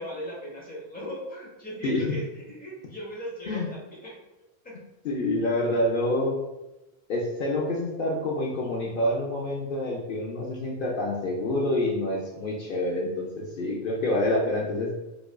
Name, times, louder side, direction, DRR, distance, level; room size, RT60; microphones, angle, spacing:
voice 1, 0.0-4.2 4.6-4.8, equal, 10° left, -4 dB, 0.8 m, -38 dB
voice 2, 5.0-6.3 7.1-14.9, left 1 dB, 60° left, -3 dB, 0.7 m, -27 dB
4.8 x 2.5 x 2.2 m, 1.0 s
omnidirectional pair, 1.1 m